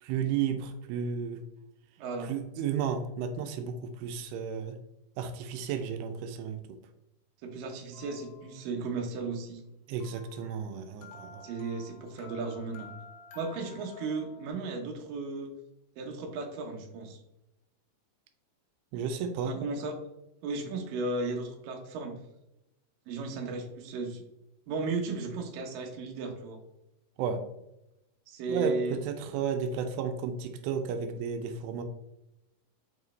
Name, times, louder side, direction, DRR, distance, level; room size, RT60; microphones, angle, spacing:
voice 1, 0.0-1.4 2.2-4.8 5.2-6.6 9.9-11.5 18.9-19.5 27.2-27.4 28.5-31.8, right 7 dB, 90° right, 7 dB, 2.6 m, -33 dB
voice 2, 2.0-2.3 7.4-9.6 11.4-12.9 13.4-15.5 16.0-17.2 19.4-19.9 20.4-22.1 23.1-24.2 24.7-26.6 28.3-29.0, right 3 dB, 70° right, 2 dB, 2.4 m, -35 dB
sound 1, 7.9-8.8 10.0-14.5, left 5 dB, 85° left, 2.8 m, -51 dB
6.2 x 4.7 x 3.2 m, 0.88 s
omnidirectional pair, 4.6 m